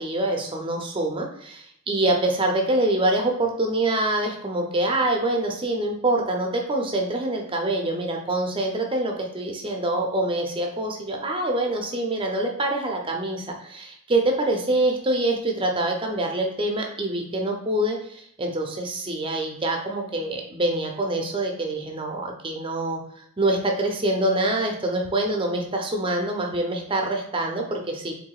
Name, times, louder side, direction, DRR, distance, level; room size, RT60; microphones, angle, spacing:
voice 1, 0.0-23.0 23.4-28.1, right 1 dB, 25° right, 2 dB, 0.5 m, -25 dB
4.7 x 3.4 x 2.3 m, 0.72 s
head